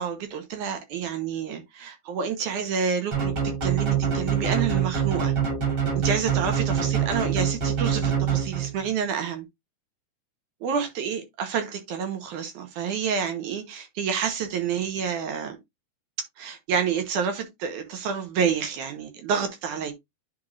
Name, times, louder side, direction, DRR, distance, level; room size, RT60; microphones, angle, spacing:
voice 1, 0.0-3.3 3.6-5.3 6.0-9.5 10.6-15.6 16.4-19.9, right 7 dB, 65° right, 2.3 m, -29 dB
sound 1, 3.1-8.9, right 7 dB, 45° right, 4.0 m, -25 dB
10.0 x 4.7 x 2.5 m
omnidirectional pair, 4.2 m